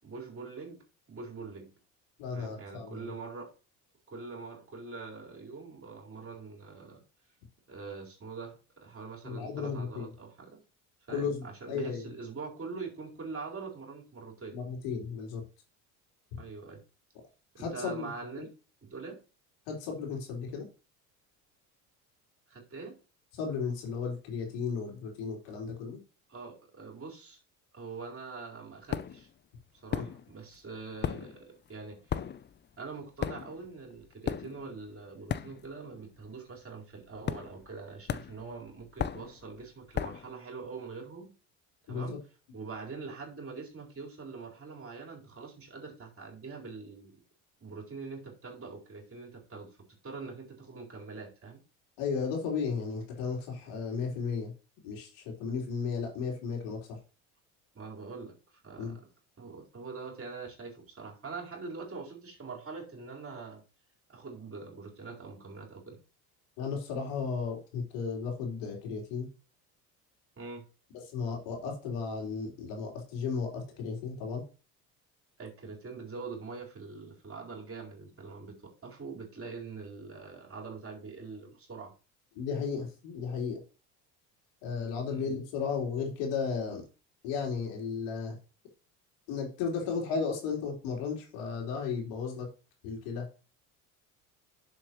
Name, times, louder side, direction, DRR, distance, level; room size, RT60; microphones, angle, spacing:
voice 1, 0.0-1.7 2.3-3.5 4.1-7.0 7.7-10.6 11.1-14.6 16.4-16.8 17.5-18.5 18.8-19.2 22.5-23.0 26.3-27.4 27.7-29.3 29.8-32.2 32.8-41.3 41.8-42.2 42.5-47.2 47.6-49.8 50.0-51.6 57.7-59.0 59.4-63.6 64.1-66.0 70.4-70.6 75.4-81.9 85.1-85.3, right 4 dB, 30° right, 0 dB, 4.4 m, -43 dB
voice 2, 2.2-3.1 9.2-10.1 11.1-12.1 14.5-15.4 16.3-16.4 17.6-18.1 18.4-18.5 19.7-20.7 23.3-26.0 29.9-30.0 41.9-42.2 52.0-54.5 54.8-57.0 58.8-59.0 66.6-69.3 71.1-74.4 82.4-83.6 84.6-86.8 87.2-88.3 89.3-92.5 92.8-93.3, left 5 dB, 65° left, 0 dB, 3.9 m, -34 dB
sound 1, 28.9-29.3 29.9-30.5 30.8-35.9 36.2-36.5 37.2-37.8 38.1-40.3, left 8 dB, 25° left, 0.6 m, -36 dB
11.0 x 7.1 x 3.1 m, 0.34 s
hypercardioid pair, 70°, 46 cm